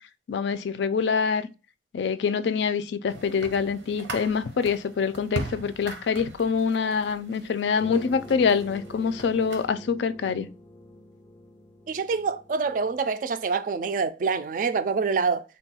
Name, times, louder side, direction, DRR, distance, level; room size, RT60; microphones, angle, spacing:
voice 1, 0.3-1.5 1.9-10.5, left 5 dB, 75° left, 0.3 m, -25 dB
sound 1, 3.1-9.7, right 2 dB, 85° right, 0.7 m, -40 dB
sound 2, 7.8-13.0, left 1 dB, 15° left, 0.5 m, -46 dB
voice 2, 11.9-15.4, right 5 dB, 45° right, 0.3 m, -26 dB
3.6 x 2.3 x 4.2 m
head